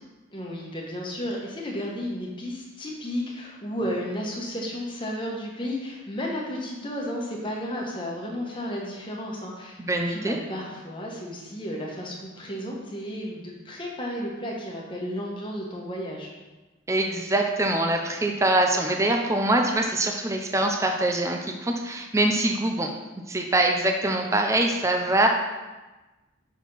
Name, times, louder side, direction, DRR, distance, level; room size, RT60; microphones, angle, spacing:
voice 1, 0.3-16.3, equal, 25° left, -3 dB, 1.3 m, -33 dB
voice 2, 9.8-10.4 16.9-22.9 23.3-25.3, right 1 dB, 15° right, 3 dB, 0.5 m, -24 dB
6.2 x 4.3 x 5.5 m, 1.1 s
head